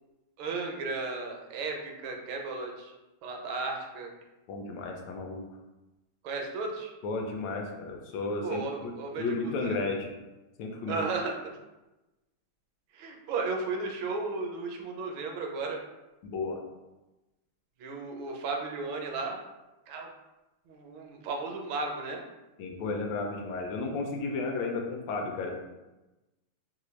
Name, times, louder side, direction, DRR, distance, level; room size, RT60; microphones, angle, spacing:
voice 1, 0.4-2.9 3.2-4.1 6.2-6.9 8.4-9.9 10.9-11.6 12.9-15.8 17.8-19.4 19.9-20.1 20.7-22.2, right 3 dB, 80° right, 1 dB, 1.3 m, -34 dB
voice 2, 4.5-5.4 7.0-8.9 9.2-10.1 10.6-11.0 16.2-16.6 22.6-25.5, left 3 dB, 75° left, 2 dB, 1.2 m, -33 dB
3.3 x 2.5 x 3.0 m, 1.0 s
omnidirectional pair, 2.3 m